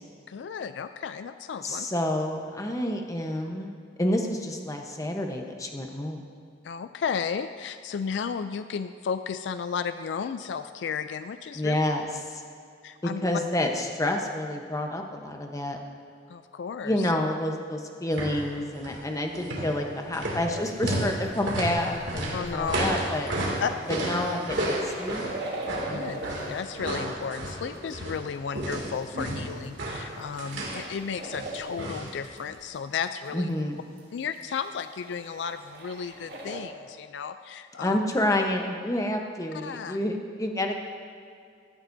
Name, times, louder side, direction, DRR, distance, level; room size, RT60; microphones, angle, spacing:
voice 1, 0.3-1.9 6.6-11.8 12.8-13.2 16.3-17.1 22.3-22.8 23.6-24.1 25.8-26.2 26.5-33.5 34.1-38.0 39.5-40.0, left 6 dB, 65° left, 11 dB, 0.3 m, -33 dB
voice 2, 1.6-6.2 11.5-12.1 12.3-12.4 13.2-15.8 16.8-23.3 23.9-25.2 25.8-26.4 33.3-33.8 37.8-40.8, left 1 dB, 20° left, 3 dB, 0.9 m, -29 dB
sound 1, 18.1-18.5 18.7-19.0 19.3-28.3 28.6-30.9 31.3-32.2 32.4-32.5, right 1 dB, 75° right, 2.5 m, -32 dB
sound 2, 20.5-20.9 21.4-21.5 22.0-22.1 22.5-22.6 22.8-22.9 23.1-23.6 23.9-26.7 27.2-27.9 28.7-31.8 32.1-32.4 32.6-32.7 33.0-33.1 33.2-33.3 33.6-33.7 34.0-34.1 34.3-36.6, right 2 dB, 55° right, 1.9 m, -40 dB
16.5 x 13.0 x 2.7 m, 2.3 s
head